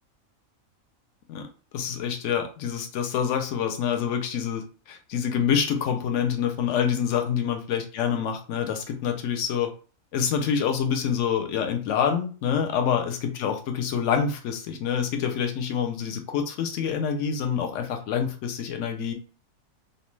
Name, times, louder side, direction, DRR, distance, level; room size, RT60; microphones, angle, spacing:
voice 1, 1.7-4.6 4.9-9.7 10.1-19.1, left 7 dB, 70° left, 5 dB, 0.8 m, -26 dB
2.5 x 2.1 x 3.1 m, 0.38 s
omnidirectional pair, 1.4 m